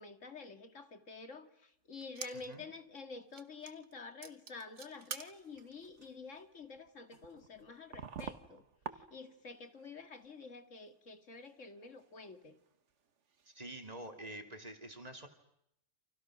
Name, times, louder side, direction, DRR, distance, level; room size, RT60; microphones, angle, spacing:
voice 1, 0.0-8.6 8.9-12.6, left 4 dB, 80° left, 8 dB, 2.5 m, -49 dB
sound 1, 2.0-2.6 3.0-3.1 3.3-3.9 4.2-9.5 9.8-10.5 10.8-10.9 11.5-13.6 14.0-14.1, right 6 dB, 70° right, 1.6 m, -49 dB
voice 2, 2.3-2.7 13.5-15.3, right 1 dB, 30° right, 5 dB, 2.8 m, -47 dB
29.5 x 27.5 x 6.3 m, 0.78 s
omnidirectional pair, 1.3 m